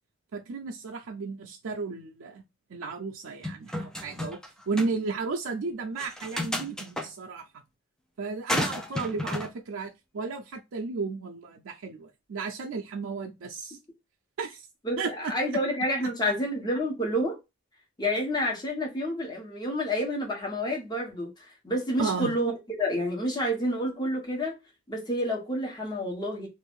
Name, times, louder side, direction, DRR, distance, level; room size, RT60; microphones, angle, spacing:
voice 1, 0.3-2.4 2.7-4.4 4.7-7.5 8.2-13.8 14.4-14.7 15.0-15.3 22.0-22.3, right 4 dB, 90° right, 0.5 m, -34 dB
sound 1, 3.4-4.5 4.8-4.9 6.0-7.1 8.5-9.5, left 1 dB, 5° left, 0.4 m, -31 dB
voice 2, 14.8-17.4 18.0-21.3 21.6-22.5 22.8-24.6 24.9-26.5, equal, 20° left, 1.1 m, -29 dB
2.5 x 2.5 x 3.5 m
head